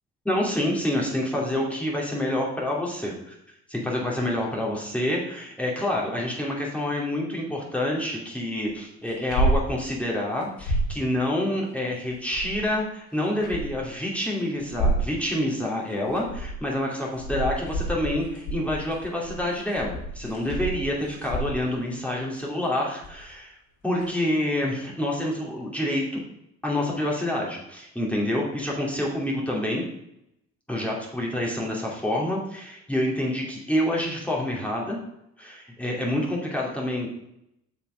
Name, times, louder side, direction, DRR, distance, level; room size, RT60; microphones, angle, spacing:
voice 1, 0.2-3.3 3.7-23.6 23.8-26.2 26.6-29.8 30.7-35.0 35.4-37.2, left 1 dB, 5° left, -3 dB, 2.6 m, -27 dB
sound 1, 9.1-9.7 10.0-10.1 10.4-11.0 12.1-12.7 13.2-13.9 14.6-15.1 15.9-16.6 17.0-21.8 23.0-23.3 24.0-24.1, right 1 dB, 80° left, 3.5 m, -29 dB
6.9 x 5.9 x 5.0 m, 0.80 s
cardioid pair, 90°, 30 cm